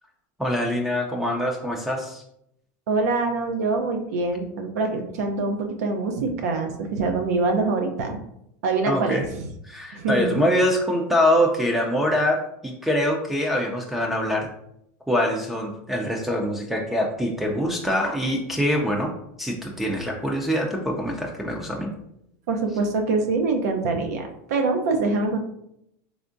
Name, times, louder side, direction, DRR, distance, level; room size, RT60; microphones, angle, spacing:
voice 1, 0.4-2.2 8.8-9.2 9.7-14.5 15.1-19.1 19.4-21.9, equal, 5° right, 0 dB, 0.4 m, -24 dB
voice 2, 2.9-8.2 8.6-9.5 9.9-10.4 22.5-25.4, right 3 dB, 90° right, 3 dB, 0.6 m, -24 dB
3.5 x 3.4 x 2.5 m, 0.77 s
supercardioid pair, 140°, 8 cm